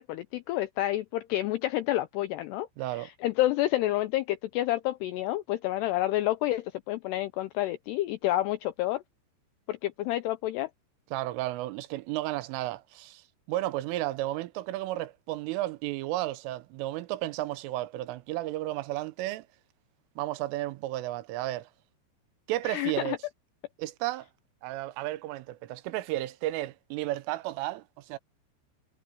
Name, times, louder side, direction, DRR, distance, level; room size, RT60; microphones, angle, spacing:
voice 1, 0.0-2.7 3.0-9.0 9.7-10.7 22.6-23.2, left 15 dB, 85° left, 2.4 m, -29 dB
voice 2, 2.8-3.1 11.1-19.5 20.2-21.7 22.5-23.2 23.8-24.3 24.6-28.2, right 16 dB, 90° right, 3.5 m, -33 dB
omnidirectional pair, 5.6 m